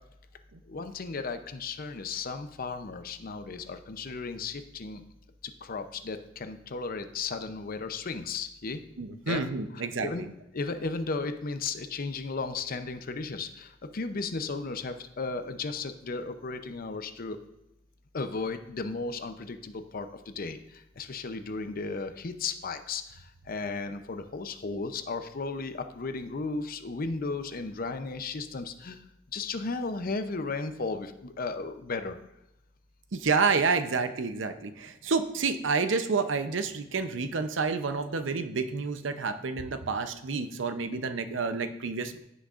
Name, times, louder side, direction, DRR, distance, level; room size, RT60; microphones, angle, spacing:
voice 1, 0.7-5.0 5.7-8.8 9.3-9.4 9.7-10.3 10.5-13.5 13.9-17.4 18.1-20.1 20.4-20.6 21.0-23.0 23.5-29.0 29.3-32.2, left 4 dB, 50° left, 9 dB, 0.6 m, -34 dB
voice 2, 9.0-10.3 33.1-42.2, right 4 dB, 75° right, 10 dB, 0.7 m, -29 dB
15.5 x 6.2 x 2.5 m, 0.86 s
head